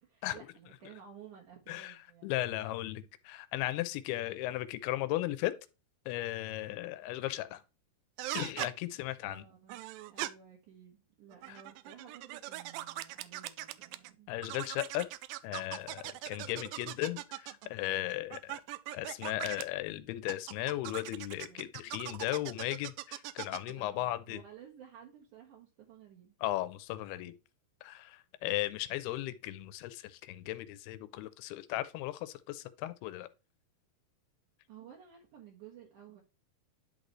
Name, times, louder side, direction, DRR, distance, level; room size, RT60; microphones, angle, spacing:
voice 1, 0.0-2.3 6.6-6.9 9.2-14.3 21.4-21.7 23.8-26.4 34.7-36.2, right 8 dB, 60° right, 2.5 m, -54 dB
voice 2, 1.7-5.5 6.1-7.6 8.3-9.5 11.5-11.6 14.3-15.1 15.4-18.6 18.9-24.4 26.4-27.3 27.8-33.3, left 15 dB, 90° left, 2.6 m, -36 dB
sound 1, 8.2-8.7 9.7-10.3 11.3-14.1 14.4-17.7 18.3-19.6 20.3-23.7, right 16 dB, 80° right, 2.1 m, -41 dB
10.5 x 4.0 x 3.1 m
omnidirectional pair, 4.5 m